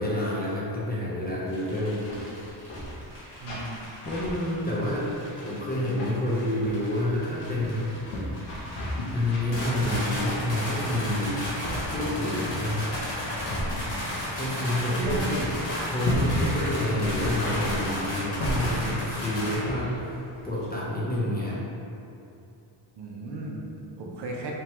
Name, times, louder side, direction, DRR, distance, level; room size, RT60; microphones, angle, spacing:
voice 1, 0.0-2.1 4.0-7.9 9.1-11.4 11.9-13.0 14.3-15.2 15.9-21.6, left 1 dB, 20° left, -7 dB, 0.4 m, -28 dB
sound 1, 1.5-19.6, left 1 dB, 60° left, 1.2 m, -34 dB
sound 2, 2.0-2.2 2.5-3.2 3.4-3.8 4.0-5.4 5.8-6.1 6.6-6.9 7.5-19.1 19.7-20.1 20.4-20.7, left 1 dB, 85° left, 0.8 m, -34 dB
voice 2, 3.4-3.9 5.3-5.4 15.0-15.5 23.0-24.5, right 1 dB, 60° right, -1 dB, 0.5 m, -35 dB
sound 3, 6.6-14.0, left 1 dB, 45° left, 0.8 m, -47 dB
2.9 x 2.1 x 2.9 m, 2.7 s
cardioid pair, 95°, 50 cm